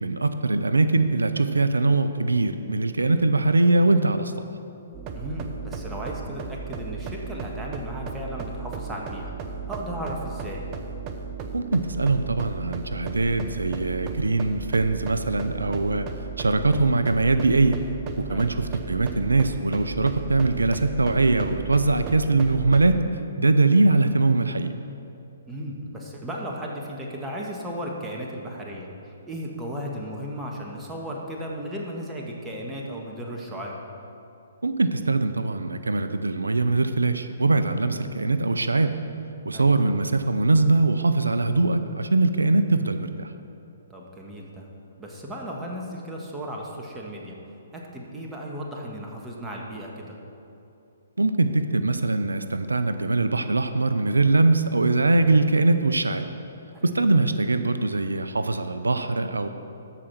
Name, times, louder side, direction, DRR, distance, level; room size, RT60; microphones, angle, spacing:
voice 1, 0.0-4.3 11.5-16.1 16.4-17.8 18.3-23.0 23.4-24.7 34.6-39.0 39.4-43.3 51.2-56.3 56.8-59.5, right 3 dB, 90° right, 10 dB, 0.5 m, -22 dB
sound 1, 4.9-23.0, right 5 dB, 30° right, 0.8 m, -35 dB
voice 2, 5.1-9.3 9.7-10.7 18.3-18.6 25.5-33.8 39.5-39.7 43.9-44.7 45.0-47.4 47.7-50.2 56.7-57.1, equal, 10° right, -2 dB, 1.4 m, -35 dB
13.5 x 5.0 x 5.8 m, 2.7 s
hypercardioid pair, 135°, 0 cm